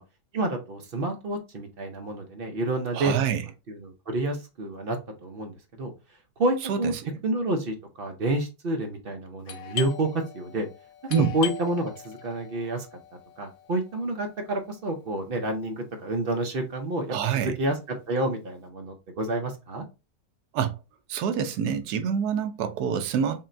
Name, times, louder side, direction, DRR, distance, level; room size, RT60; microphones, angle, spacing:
voice 1, 0.3-3.1 3.7-5.5 5.8-5.9 6.4-6.9 7.2-10.7 11.3-12.9 13.4-17.2 17.4-17.8 18.1-19.8, right 2 dB, 55° right, 0.6 m, -29 dB
voice 2, 2.9-3.4 6.7-6.8 11.1-11.4 17.1-17.5 20.5-20.8 21.1-23.4, right 7 dB, 80° right, 1.1 m, -26 dB
Doorbell, 9.5-14.9, left 11 dB, 65° left, 1.1 m, -40 dB
5.6 x 2.1 x 2.5 m
omnidirectional pair, 1.7 m